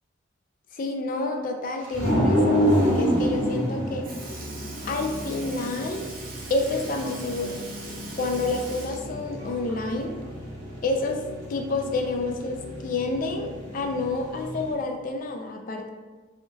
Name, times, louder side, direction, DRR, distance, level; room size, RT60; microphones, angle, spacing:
voice 1, 0.7-4.1 4.8-6.1 6.5-7.6 8.2-10.1 10.8-11.2 11.5-12.6 12.8-15.9, left 3 dB, 45° left, 3 dB, 0.4 m, -29 dB
sound 1, 1.9-14.7, equal, 75° right, 1.4 m, -29 dB
Sink (filling or washing) / Liquid, 4.0-10.1 10.5-10.6 12.1-12.2 13.2-13.3 14.1-14.3 15.1-15.2, right 3 dB, 50° right, 0.5 m, -42 dB
3.5 x 2.2 x 2.6 m, 1.3 s
head